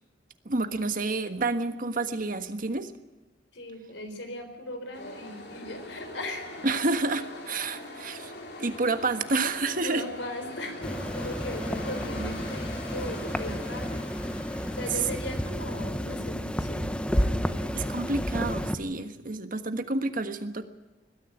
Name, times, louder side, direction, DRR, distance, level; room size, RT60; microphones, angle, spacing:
voice 1, 0.4-2.9 6.6-8.3 8.6-10.1 17.7-20.7, right 3 dB, 50° right, 8 dB, 1.4 m, -29 dB
voice 2, 3.5-6.5 9.7-14.0 14.8-18.1, left 1 dB, 80° left, 7 dB, 4.2 m, -38 dB
sound 1, 4.9-17.8, left 2 dB, 60° left, 3.7 m, -44 dB
sound 2, 10.8-18.7, equal, 5° left, 1.0 m, -31 dB
20.5 x 13.5 x 9.8 m, 1.2 s
head